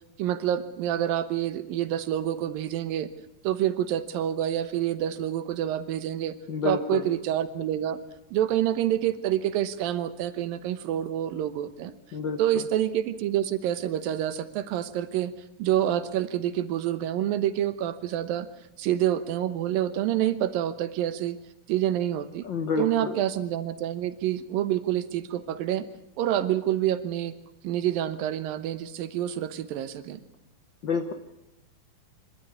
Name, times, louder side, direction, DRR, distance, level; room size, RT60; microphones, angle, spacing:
voice 1, 0.2-3.1 3.4-6.4 6.6-8.0 8.3-11.9 12.4-15.3 15.6-18.5 18.8-21.4 21.7-22.5 22.8-25.9 26.2-27.4 27.6-30.2, right 11 dB, 85° right, 12 dB, 2.8 m, -27 dB
voice 2, 6.5-7.0 12.1-12.7 22.4-23.2 30.8-31.1, left 5 dB, 75° left, 7 dB, 1.0 m, -29 dB
25.0 x 13.0 x 9.6 m, 0.90 s
omnidirectional pair, 4.0 m